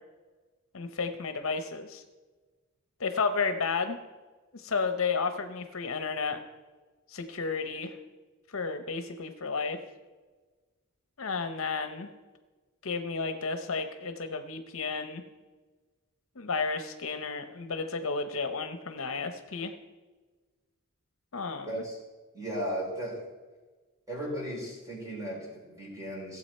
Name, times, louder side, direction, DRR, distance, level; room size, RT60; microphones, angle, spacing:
voice 1, 0.7-2.0 3.0-4.0 4.5-6.4 7.1-7.9 8.5-9.8 11.2-12.1 12.8-15.2 16.4-19.7 21.3-21.8, left 4 dB, 65° left, 8 dB, 0.8 m, -32 dB
voice 2, 21.7-22.0 22.3-23.2 24.1-26.4, equal, 15° right, -2 dB, 3.6 m, -36 dB
16.0 x 7.8 x 4.3 m, 1.3 s
head